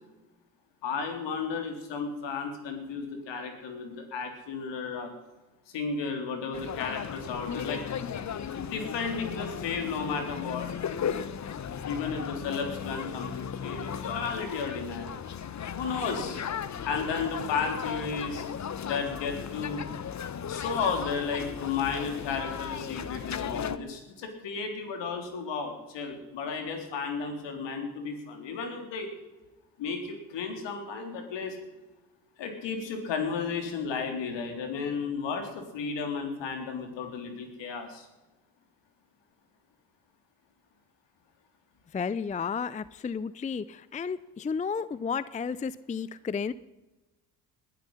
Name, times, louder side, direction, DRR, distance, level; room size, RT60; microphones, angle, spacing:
voice 1, 0.8-5.1 5.7-7.8 8.6-10.7 11.8-15.1 15.8-16.4 16.8-18.5 18.8-19.8 20.5-29.1 29.8-31.6 32.4-38.1, left 5 dB, 65° left, 4 dB, 3.7 m, -33 dB
sound 1, 6.5-23.8, left 8 dB, 35° left, 1.0 m, -36 dB
voice 2, 41.9-46.5, left 6 dB, 15° left, 18 dB, 0.5 m, -32 dB
20.5 x 11.5 x 5.7 m, 1.1 s
hypercardioid pair, 55°, 47 cm